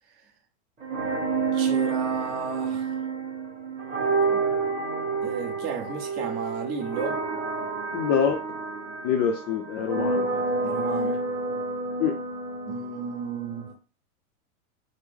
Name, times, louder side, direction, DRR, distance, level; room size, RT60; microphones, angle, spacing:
sound 1, 0.8-13.7, right 4 dB, 15° right, 1.3 m, -29 dB
voice 1, 1.5-2.9 4.3-4.4 5.2-7.2 10.6-11.2 12.7-13.7, right 5 dB, 35° right, 1.1 m, -33 dB
voice 2, 7.9-8.4 9.0-10.4 12.0-12.2, left 7 dB, 35° left, 0.5 m, -25 dB
3.4 x 2.0 x 3.5 m
hypercardioid pair, 125°, 43 cm